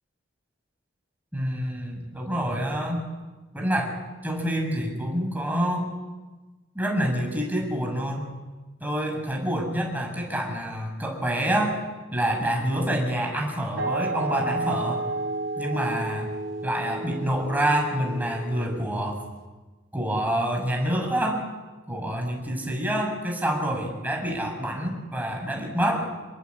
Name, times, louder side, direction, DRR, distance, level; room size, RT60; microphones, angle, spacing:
voice 1, 1.3-3.0 3.5-3.9 4.2-5.9 6.7-8.3 8.8-11.8 12.1-15.0 15.6-16.3 16.6-19.2 19.9-21.4 21.9-26.0, right 1 dB, 10° right, 1 dB, 6.8 m, -27 dB
sound 1, 13.8-19.2, right 2 dB, 90° right, 4.0 m, -32 dB
28.0 x 21.5 x 8.6 m, 1.2 s
head